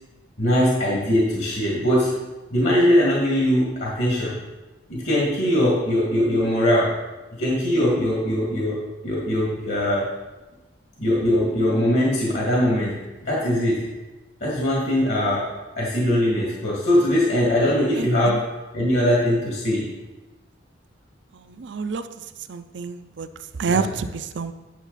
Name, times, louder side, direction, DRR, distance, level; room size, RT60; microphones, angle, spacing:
voice 1, 0.4-2.1 2.5-4.3 4.9-6.9 7.4-8.8 9.0-10.1 11.0-13.8 14.4-15.5 15.8-18.4 18.7-19.9 23.7-23.8, equal, 60° left, -5 dB, 2.2 m, -21 dB
voice 2, 18.0-18.4 21.3-22.1 22.5-23.3 23.6-24.5, right 5 dB, 65° right, 11 dB, 0.5 m, -28 dB
10.5 x 7.0 x 4.1 m, 1.1 s
head